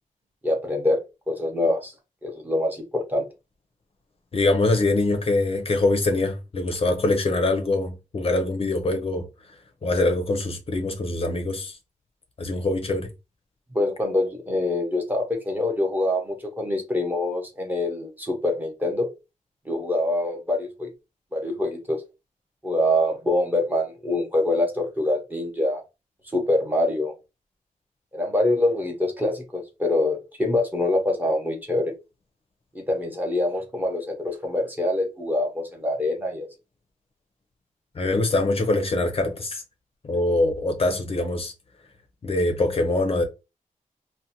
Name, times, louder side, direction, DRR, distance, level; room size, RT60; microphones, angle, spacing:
voice 1, 0.4-1.0 1.3-1.9 2.2-3.2 13.7-19.1 19.7-20.9 21.3-22.0 22.6-25.8 26.3-27.1 28.1-31.9 32.7-36.5, left 1 dB, 15° right, 0.7 m, -25 dB
voice 2, 4.3-9.2 9.8-11.7 12.4-13.1 38.0-39.6 40.0-41.5 42.2-43.2, left 2 dB, 45° left, 0.5 m, -23 dB
2.5 x 2.1 x 2.7 m
wide cardioid pair, 145°, 14 cm